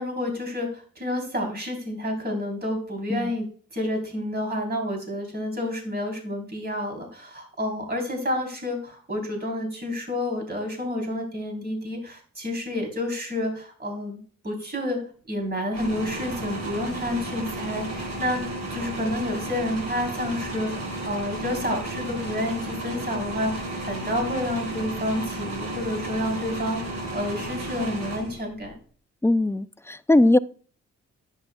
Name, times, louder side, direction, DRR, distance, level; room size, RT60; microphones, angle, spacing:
voice 1, 0.0-3.5 3.7-14.2 14.4-15.0 15.3-18.4 18.7-20.7 21.1-28.8, left 1 dB, 35° right, 3.6 m, -29 dB
sound 1, 15.7-28.7, right 1 dB, 65° right, 3.7 m, -33 dB
voice 2, 29.2-30.4, left 2 dB, 10° left, 0.4 m, -20 dB
10.5 x 8.3 x 2.3 m
cardioid pair, 65°, 29 cm